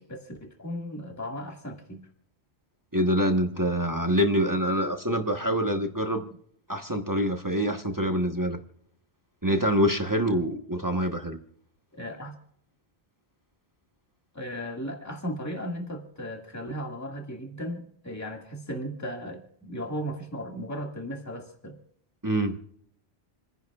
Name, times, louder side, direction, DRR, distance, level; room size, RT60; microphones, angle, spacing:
voice 1, 0.0-2.1 11.9-12.4 14.3-21.8, equal, 15° left, 2 dB, 1.9 m, -36 dB
voice 2, 2.9-6.3 6.7-8.6 9.4-11.4 22.2-22.6, equal, 20° right, 4 dB, 1.0 m, -25 dB
29.0 x 10.5 x 2.4 m, 0.68 s
omnidirectional pair, 1.1 m